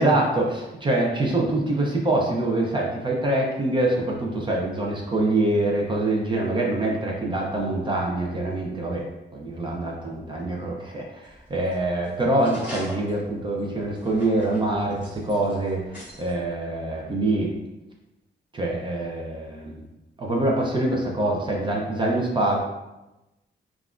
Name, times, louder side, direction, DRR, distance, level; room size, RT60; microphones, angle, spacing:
voice 1, 0.0-9.0 9.3-17.5 18.5-19.8 20.2-22.6, right 2 dB, 25° right, -1 dB, 0.5 m, -25 dB
sound 1, 11.2-16.3, left 1 dB, 10° right, 1.3 m, -42 dB
5.4 x 2.4 x 2.4 m, 0.99 s
wide cardioid pair, 160°, 18 cm